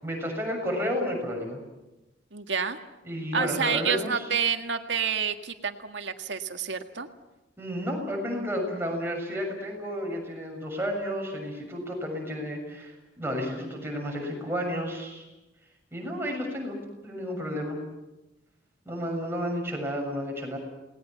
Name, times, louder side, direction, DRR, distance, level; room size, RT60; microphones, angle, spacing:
voice 1, 0.0-1.6 3.0-4.2 7.6-15.2 15.9-17.8 18.9-20.6, equal, 15° right, 0 dB, 7.0 m, -32 dB
voice 2, 2.3-2.8 3.3-7.1, right 6 dB, 85° right, 6 dB, 1.9 m, -28 dB
29.0 x 20.0 x 7.4 m, 1.0 s
head